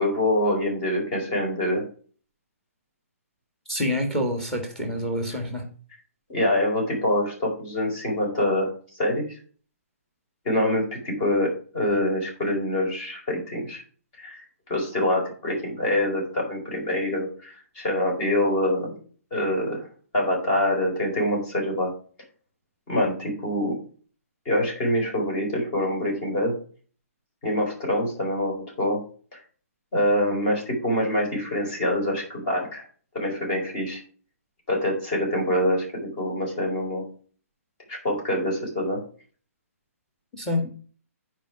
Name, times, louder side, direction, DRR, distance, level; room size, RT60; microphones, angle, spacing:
voice 1, 0.0-1.9 6.3-9.2 10.4-13.8 14.2-18.9 19.3-19.9 20.1-21.9 22.9-23.8 24.4-26.5 27.4-29.0 29.3-29.4 29.9-32.8 33.1-34.0 34.7-37.0 37.9-39.0 40.6-40.7, left 1 dB, 25° left, -2 dB, 4.6 m, -25 dB
voice 2, 3.7-5.6 40.4-40.6, left 1 dB, 5° left, 4 dB, 1.7 m, -27 dB
9.2 x 5.0 x 6.0 m, 0.42 s
hypercardioid pair, 170°, 8 cm